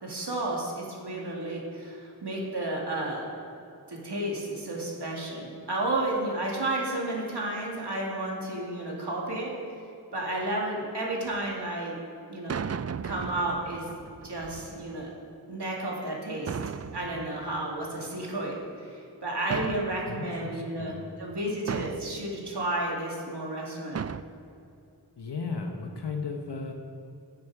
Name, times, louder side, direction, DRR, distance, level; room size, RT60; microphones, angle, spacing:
voice 1, 0.0-3.3 3.9-9.5 10.1-12.0 12.3-12.7 13.0-13.9 14.2-15.1 15.5-16.6 16.9-24.0, right 1 dB, 90° right, -3 dB, 2.6 m, -32 dB
sound 1, 11.3-11.5 12.5-15.1 16.5-18.2 19.5-20.5 21.7-22.4 23.9-24.2, right 6 dB, 40° right, 0.4 m, -36 dB
voice 2, 20.1-21.1 25.2-26.7, left 4 dB, 85° left, 3 dB, 1.1 m, -35 dB
15.0 x 9.8 x 4.9 m, 2.7 s
wide cardioid pair, 45°, 40 cm